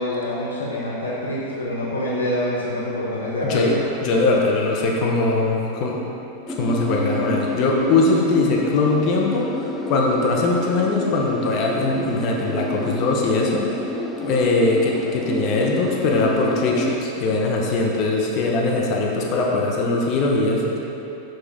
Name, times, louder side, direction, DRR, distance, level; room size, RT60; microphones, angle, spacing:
voice 1, 0.0-3.8, left 1 dB, 90° left, -7 dB, 0.9 m, -25 dB
voice 2, 4.0-6.0 6.5-13.7 14.2-20.8, left 3 dB, 45° left, -2 dB, 0.9 m, -21 dB
sound 1, 6.5-17.0, left 1 dB, 10° left, 0.5 m, -29 dB
5.8 x 5.2 x 3.7 m, 3.0 s
hypercardioid pair, 95°, 0 cm